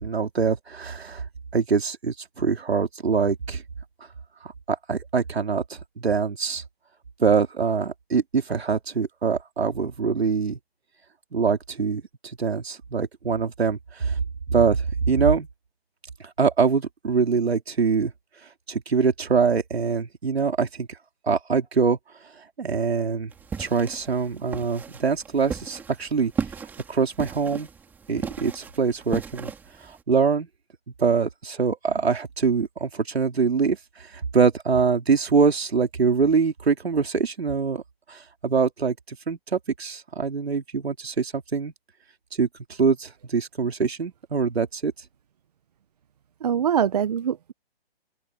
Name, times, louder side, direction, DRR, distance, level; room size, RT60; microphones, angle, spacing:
voice 1, 0.0-1.2 1.5-3.6 4.4-6.6 7.2-10.6 11.3-14.2 14.5-15.5 16.4-18.1 18.7-20.9 21.3-22.0 22.6-23.3 23.6-26.3 26.9-27.7 28.1-29.5 29.8-30.5 31.0-33.8 34.1-37.8 38.1-41.7 42.4-42.5 42.8-44.9, right 5 dB, 80° right, 3.8 m, -24 dB
sound 1, 23.3-30.0, right 6 dB, 5° right, 2.4 m, -36 dB
voice 2, 46.4-47.5, right 8 dB, 40° right, 1.1 m, -23 dB
open air
hypercardioid pair, 160°, 31 cm